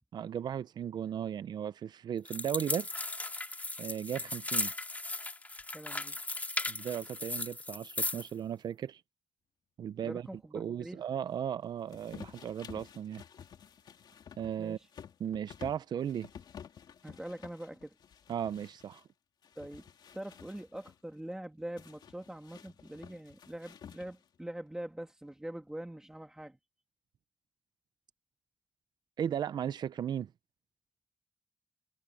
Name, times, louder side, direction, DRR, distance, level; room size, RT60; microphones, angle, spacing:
voice 1, 0.1-2.9 3.8-4.7 6.7-9.0 9.8-10.3 10.5-13.2 14.4-14.8 15.2-16.3 18.3-19.0 29.2-30.3, right 9 dB, 80° right, 0.5 m, -36 dB
sound 1, 2.3-8.3, left 2 dB, 20° left, 2.5 m, -37 dB
voice 2, 5.7-6.2 10.0-11.0 14.6-14.9 17.0-17.9 19.6-19.8 20.1-26.6, right 1 dB, 10° right, 1.6 m, -43 dB
sound 2, 11.9-19.0 19.4-21.0 21.8-24.4, left 8 dB, 90° left, 3.0 m, -52 dB
wide cardioid pair, 130°, 7 cm